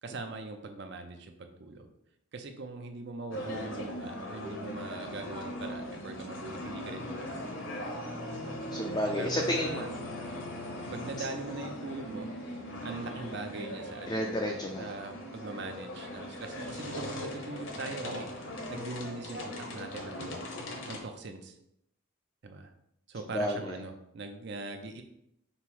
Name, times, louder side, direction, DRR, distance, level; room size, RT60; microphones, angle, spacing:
voice 1, 0.0-1.9 2.3-7.6 8.5-8.7 9.2-9.9 10.9-12.3 12.8-14.2 14.8-20.4 20.9-21.5 22.4-22.7 23.1-25.0, right 3 dB, 55° right, 6 dB, 0.5 m, -41 dB
sound 1, 3.3-21.0, left 1 dB, 65° left, 0.8 m, -39 dB
voice 2, 8.7-9.8 14.1-14.9 23.3-23.7, left 1 dB, 20° left, -1 dB, 0.3 m, -31 dB
5.4 x 2.0 x 4.5 m, 0.77 s
head